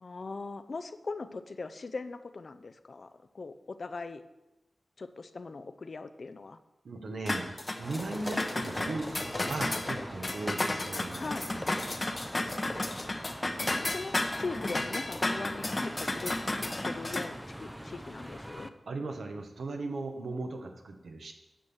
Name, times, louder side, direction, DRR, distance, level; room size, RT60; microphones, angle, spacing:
voice 1, 0.0-4.2 5.0-6.6 11.2-11.5 13.6-18.7, left 3 dB, 55° left, 11 dB, 0.6 m, -40 dB
voice 2, 6.8-11.2 11.5-11.6 18.9-21.3, right 3 dB, 80° right, 4 dB, 1.4 m, -37 dB
sound 1, 7.3-17.3, left 2 dB, 30° left, 0.9 m, -33 dB
sound 2, 7.8-18.7, equal, 5° right, 0.6 m, -44 dB
9.2 x 6.3 x 7.2 m, 1.0 s
wide cardioid pair, 105°, 0 cm